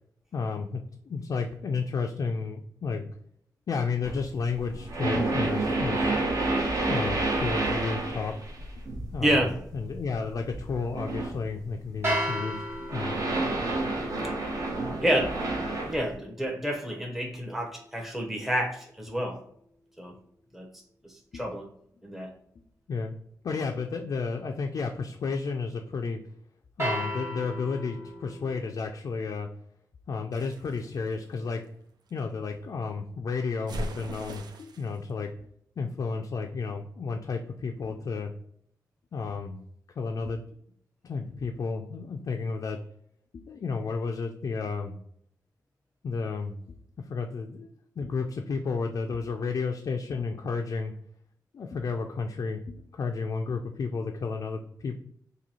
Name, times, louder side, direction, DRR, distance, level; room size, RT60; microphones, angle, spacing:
voice 1, 0.3-3.1 3.7-6.1 6.8-8.3 9.1-12.6 12.9-13.2 21.3-21.4 22.9-23.1 23.4-26.2 26.8-29.5 30.1-31.6 32.1-35.3 35.8-38.3 39.1-39.6 40.0-40.4 41.0-42.8 43.3-45.0 46.0-46.8 47.1-47.7 48.0-50.9 51.5-55.0, left 4 dB, 55° left, 3 dB, 0.4 m, -32 dB
sound 1, 4.0-11.5 11.8-12.0 12.7-16.0, right 2 dB, 55° right, 0.9 m, -30 dB
voice 2, 9.2-9.5 15.0-15.4 15.9-19.4 20.0-20.1 20.5-20.7 21.0-21.6 22.0-22.3, right 1 dB, 5° right, 0 dB, 0.7 m, -28 dB
sound 2, 12.0-18.2 26.8-28.7, equal, 35° right, 1.1 m, -36 dB
sound 3, 30.3-32.2 33.7-35.0, right 1 dB, 80° right, 0.4 m, -39 dB
2.9 x 2.7 x 4.0 m, 0.69 s
wide cardioid pair, 105°, 7 cm